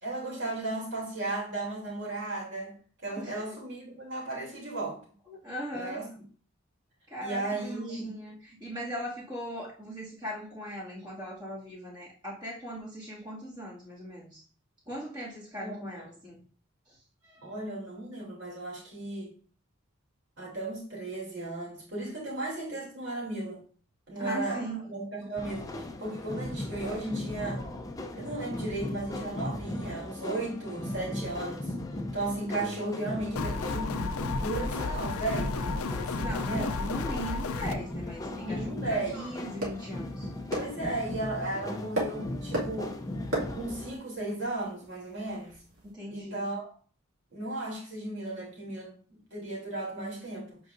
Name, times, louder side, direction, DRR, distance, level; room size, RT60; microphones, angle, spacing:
voice 1, 0.0-2.8 3.0-5.0 5.7-6.0 7.2-8.1 15.6-16.1 17.4-19.3 20.4-23.6 24.1-27.6 28.1-31.7 32.1-36.8 38.3-39.2 40.5-43.0 43.5-45.5 46.1-46.7 47.3-50.6, right 2 dB, 55° right, -3 dB, 3.0 m, -35 dB
voice 2, 3.2-3.6 5.3-6.0 7.1-14.4 14.9-16.4 16.9-17.0 17.2-17.5 24.2-24.9 36.2-40.3 45.8-46.4, equal, 20° right, -6 dB, 2.2 m, -39 dB
sound 1, 25.4-44.0, left 1 dB, 15° left, 0.5 m, -37 dB
sound 2, 33.4-37.8, left 4 dB, 85° left, 0.5 m, -33 dB
sound 3, 37.1-45.9, right 1 dB, 70° right, 2.2 m, -39 dB
8.2 x 4.6 x 2.6 m, 0.43 s
head